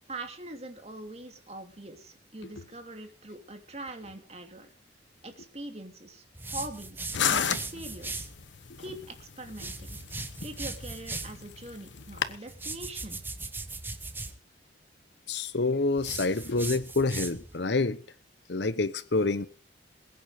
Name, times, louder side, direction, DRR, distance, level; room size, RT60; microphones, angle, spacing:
voice 1, 0.1-4.7 5.2-7.0 7.3-8.3 8.8-10.0 10.4-13.2, right 2 dB, 35° right, 2.7 m, -43 dB
sound 1, 6.4-8.3 9.5-11.4 12.5-14.4 16.0-17.6, right 3 dB, 10° right, 1.2 m, -39 dB
sound 2, 7.1-12.4, left 7 dB, 90° left, 1.2 m, -33 dB
voice 2, 15.3-18.0 18.5-19.5, left 3 dB, 70° left, 0.9 m, -27 dB
21.5 x 9.4 x 5.0 m
head